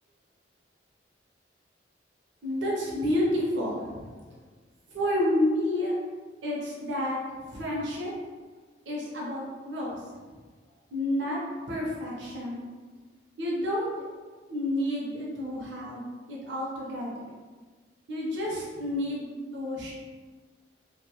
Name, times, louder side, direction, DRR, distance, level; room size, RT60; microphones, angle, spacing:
voice 1, 2.4-4.2 4.9-5.9 6.4-7.2 7.5-8.1 8.9-10.0 10.9-12.6 13.4-14.1 14.5-17.3 18.1-19.9, left 1 dB, 75° right, -4 dB, 0.6 m, -30 dB
2.6 x 2.1 x 2.8 m, 1.4 s
head